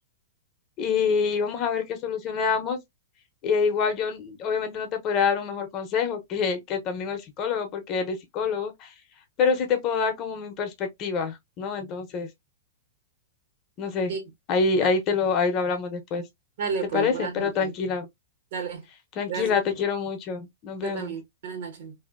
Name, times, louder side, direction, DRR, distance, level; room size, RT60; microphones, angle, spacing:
voice 1, 0.8-2.8 3.4-8.9 9.4-12.3 13.8-14.1 14.5-16.2 16.9-18.1 19.2-21.1, left 5 dB, 35° left, 0.8 m, -26 dB
voice 2, 16.6-17.7 18.5-18.8 19.3-19.5 20.8-21.9, right 5 dB, 65° right, 1.4 m, -32 dB
2.6 x 2.6 x 2.5 m
hypercardioid pair, 140°, 0 cm